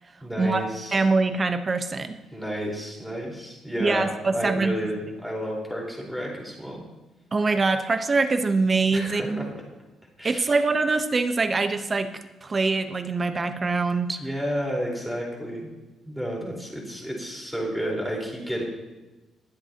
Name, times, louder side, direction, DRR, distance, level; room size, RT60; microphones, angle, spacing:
voice 1, 0.2-1.0 2.3-6.8 8.9-9.5 10.2-10.6 14.2-15.7 16.0-18.6, equal, ahead, -2 dB, 4.4 m, -31 dB
voice 2, 0.9-2.2 3.8-4.7 7.3-9.5 10.2-12.1 12.4-14.2, right 3 dB, 35° right, 8 dB, 1.0 m, -24 dB
22.0 x 7.8 x 3.0 m, 1.1 s
cardioid pair, 90°, 0 cm